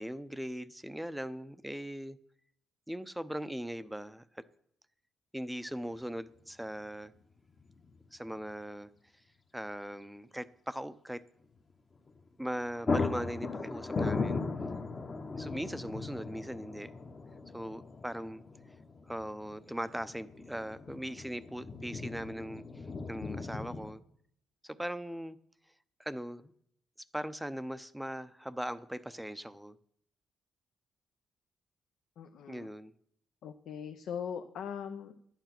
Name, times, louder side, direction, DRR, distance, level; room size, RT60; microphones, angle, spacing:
voice 1, 0.0-2.2 2.9-4.4 5.3-7.1 8.1-8.9 9.5-11.2 12.4-14.4 15.3-16.9 17.5-18.4 19.0-22.6 23.1-24.0 24.6-25.4 26.0-26.5 27.1-29.7 32.5-32.9, equal, 5° right, 0.6 m, -39 dB
sound 1, 5.9-6.0 7.6-8.0 8.3-8.4 12.1-12.3 12.5-23.9, left 4 dB, 35° left, 1.0 m, -38 dB
voice 2, 32.2-32.7 33.4-35.3, left 7 dB, 75° left, 0.7 m, -40 dB
11.5 x 9.1 x 5.9 m
cardioid pair, 90°, 0 cm